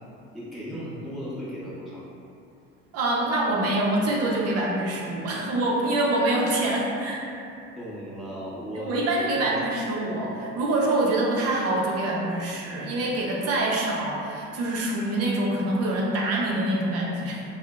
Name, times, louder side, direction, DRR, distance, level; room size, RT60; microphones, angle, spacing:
voice 1, 0.3-2.0 7.8-9.0 9.4-9.6, equal, ahead, -10 dB, 0.8 m, -36 dB
voice 2, 2.9-7.2 8.8-17.4, right 1 dB, 50° right, -3 dB, 0.6 m, -25 dB
2.7 x 2.1 x 2.2 m, 2.6 s
hypercardioid pair, 75°, 31 cm